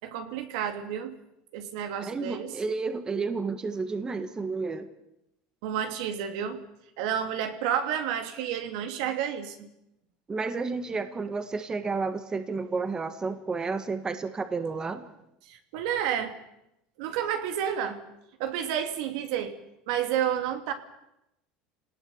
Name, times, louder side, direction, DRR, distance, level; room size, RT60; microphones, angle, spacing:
voice 1, 0.0-1.1 1.5-2.5 5.6-6.6 7.0-9.7 15.5-16.4 17.0-18.0 18.4-19.6 19.9-20.7, right 9 dB, 80° right, 7 dB, 2.7 m, -30 dB
voice 2, 2.0-4.9 10.3-15.0, right 4 dB, 20° right, 9 dB, 1.6 m, -31 dB
28.0 x 19.0 x 7.2 m, 0.83 s
supercardioid pair, 130°, 4 cm